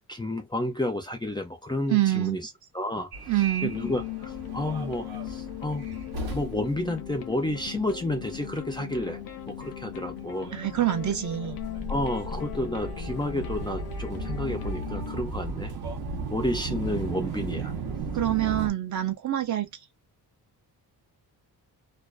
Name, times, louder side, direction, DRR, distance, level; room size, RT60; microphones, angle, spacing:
voice 1, 0.1-3.1 3.6-5.8 6.3-9.2 9.5-10.6 11.9-15.7 16.3-17.7, left 1 dB, 15° left, 0.4 m, -31 dB
voice 2, 1.9-2.4 3.3-3.7 10.5-11.6 18.1-19.7, right 13 dB, 50° right, 0.5 m, -26 dB
Subway metro underground, 3.1-18.7, right 3 dB, 80° right, 0.9 m, -36 dB
sound 1, 3.6-15.2, left 14 dB, 70° left, 0.6 m, -39 dB
2.4 x 2.2 x 2.3 m
cardioid pair, 135°, 37 cm